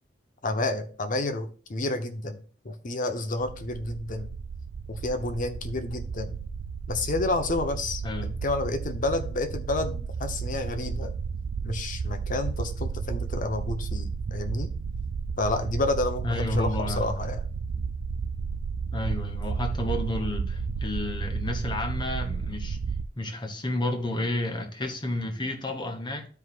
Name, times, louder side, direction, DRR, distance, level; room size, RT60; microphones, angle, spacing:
voice 1, 0.4-2.4 2.6-4.3 4.9-6.4 6.9-11.1 11.6-14.7 15.4-17.4, left 2 dB, 45° left, 0.8 m, -30 dB
sound 1, 3.4-23.1, right 5 dB, 70° right, 0.3 m, -33 dB
voice 2, 16.2-17.1 18.9-22.8 23.1-26.3, left 1 dB, 25° left, 1.1 m, -31 dB
13.0 x 4.8 x 2.4 m
head